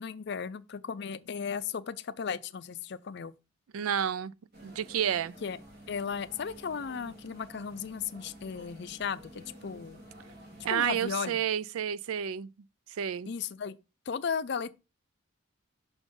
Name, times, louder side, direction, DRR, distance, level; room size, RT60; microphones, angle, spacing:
voice 1, 0.0-3.3 5.4-5.6 5.9-10.0 10.7-11.4 13.3-13.8 14.1-14.7, left 6 dB, 55° left, 0.4 m, -35 dB
voice 2, 3.7-4.3 4.6-5.4 10.6-12.5 13.0-13.3, right 9 dB, 85° right, 0.4 m, -30 dB
sound 1, 4.5-11.1, equal, 50° right, 1.6 m, -51 dB
6.0 x 3.7 x 5.2 m
head